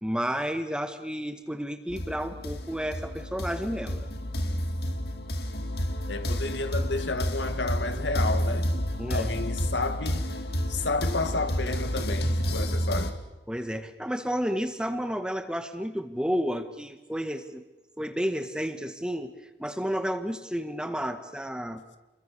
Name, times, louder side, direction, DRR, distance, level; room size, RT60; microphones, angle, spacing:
voice 1, 0.0-4.1 9.0-9.3 13.5-17.6 18.0-19.3 19.6-22.0, equal, 5° right, 1.6 m, -31 dB
sound 1, 1.9-13.1, equal, 60° left, 2.4 m, -30 dB
voice 2, 6.1-8.8 9.1-10.3 10.7-13.2, left 3 dB, 85° left, 2.3 m, -31 dB
30.0 x 23.0 x 7.0 m
head